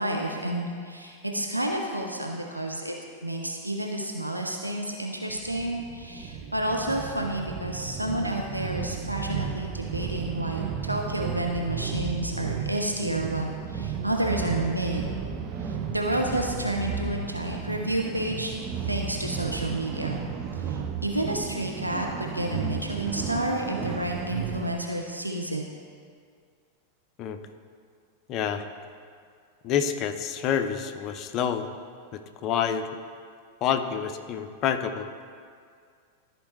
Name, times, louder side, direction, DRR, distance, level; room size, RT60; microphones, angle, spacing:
voice 1, 0.0-2.9 3.2-15.1 15.7-18.5 18.9-20.2 20.6-25.6, right 1 dB, 85° right, 1 dB, 0.5 m, -30 dB
sound 1, 5.3-24.8, right 7 dB, 35° right, 0.5 m, -34 dB
voice 2, 28.3-28.7 29.6-31.7 32.1-32.9 33.6-35.1, left 8 dB, 35° left, 8 dB, 0.5 m, -28 dB
13.0 x 4.5 x 3.2 m, 2.1 s
figure-of-eight pair, 90°, 0 cm